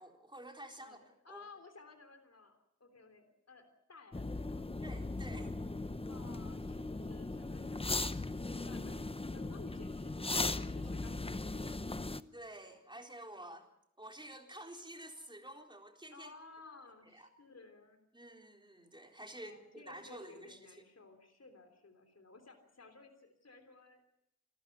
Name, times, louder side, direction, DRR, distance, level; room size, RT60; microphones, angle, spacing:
voice 1, 0.0-1.4 4.8-5.5 12.3-13.7 14.0-16.3 17.1-17.3 18.1-20.8, right 1 dB, 15° right, 3 dB, 4.0 m, -50 dB
voice 2, 1.2-4.7 6.0-12.0 16.1-18.0 19.4-24.1, left 3 dB, 60° left, 6 dB, 3.4 m, -57 dB
sound 1, 4.1-12.2, left 2 dB, 20° left, 0.8 m, -38 dB
27.5 x 13.5 x 9.3 m, 0.80 s
wide cardioid pair, 85°, 29 cm